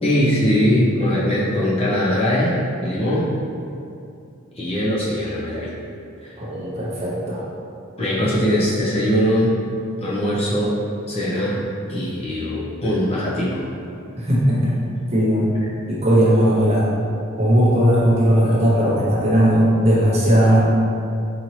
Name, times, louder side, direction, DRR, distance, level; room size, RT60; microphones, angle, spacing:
voice 1, 0.0-2.6 2.8-3.3 4.6-5.7 6.2-6.3 8.0-9.5 10.0-10.7 11.1-11.6 11.9-13.6, equal, 30° left, -7 dB, 0.6 m, -21 dB
voice 2, 6.4-7.4 14.1-14.8 15.1-15.5 15.9-16.9 17.4-20.6, equal, 30° right, -6 dB, 0.6 m, -17 dB
4.1 x 2.8 x 3.0 m, 2.5 s
head